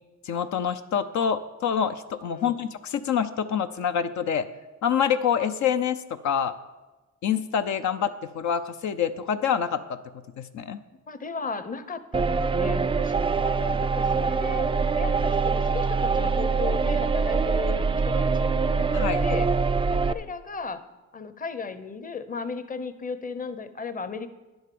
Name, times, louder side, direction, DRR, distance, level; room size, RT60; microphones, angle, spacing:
voice 1, 0.2-4.5 4.8-6.5 7.2-9.8 10.4-10.8 18.9-19.2, left 8 dB, 70° left, 9 dB, 0.7 m, -26 dB
voice 2, 2.3-2.7 11.1-14.7 15.0-19.5 19.9-20.8 21.1-24.3, left 5 dB, 25° left, 12 dB, 0.8 m, -36 dB
sound 1, 12.1-20.1, right 4 dB, 20° right, 0.4 m, -24 dB
10.5 x 8.0 x 6.9 m, 1.2 s
cardioid pair, 90°, 30 cm